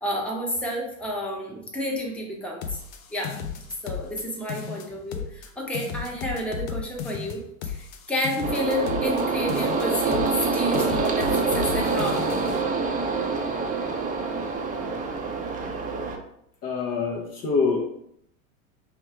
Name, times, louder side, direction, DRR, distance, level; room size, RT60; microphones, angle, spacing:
voice 1, 0.0-2.8 3.1-3.4 3.8-12.3, left 1 dB, 5° left, -2 dB, 1.0 m, -30 dB
sound 1, 2.6-4.2 4.5-5.5 5.7-9.2 9.5-10.5 10.7-12.6, left 7 dB, 70° left, 0.6 m, -35 dB
sound 2, 8.4-16.2, right 4 dB, 20° right, 0.7 m, -26 dB
voice 2, 16.6-17.8, left 4 dB, 35° left, 0 dB, 0.9 m, -25 dB
3.2 x 3.1 x 4.6 m, 0.72 s
hypercardioid pair, 95°, 42 cm